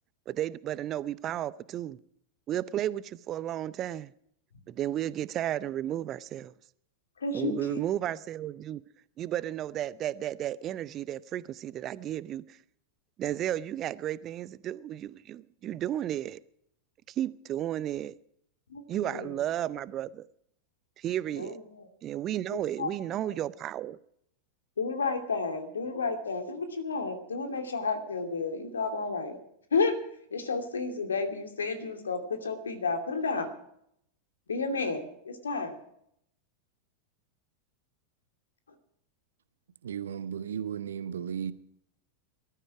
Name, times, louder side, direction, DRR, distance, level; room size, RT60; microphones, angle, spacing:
voice 1, 0.3-2.0 2.5-4.1 4.7-6.5 7.3-8.8 9.2-12.6 13.2-16.4 17.2-18.1 18.9-20.3 21.0-21.6 22.0-24.0, right 12 dB, 30° right, 0.5 m, -33 dB
voice 2, 7.2-7.8 18.7-19.4 21.4-21.9 22.5-22.9 24.8-29.4 29.7-29.9 30.3-33.5 34.5-35.8, left 4 dB, 70° left, 2.5 m, -31 dB
voice 3, 39.8-41.5, right 8 dB, 65° right, 0.9 m, -35 dB
20.0 x 13.0 x 4.8 m
figure-of-eight pair, 90°, 0 cm